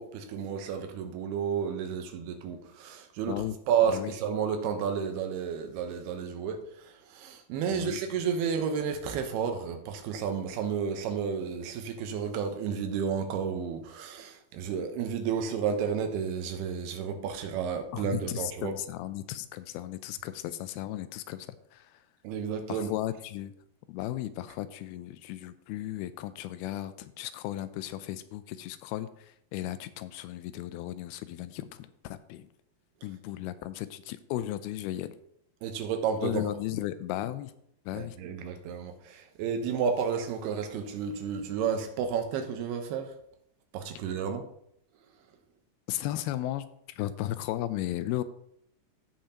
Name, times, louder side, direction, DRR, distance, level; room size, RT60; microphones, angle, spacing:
voice 1, 0.0-18.7 22.2-22.9 35.6-36.6 37.9-43.1 43.7-44.5, right 7 dB, 90° right, 6 dB, 3.0 m, -31 dB
voice 2, 17.9-21.9 22.7-23.5 23.9-32.5 33.0-35.2 36.2-37.5 37.9-38.2 45.9-46.6 47.0-48.2, left 14 dB, 85° left, 13 dB, 2.4 m, -35 dB
16.0 x 5.6 x 2.9 m, 0.72 s
omnidirectional pair, 4.5 m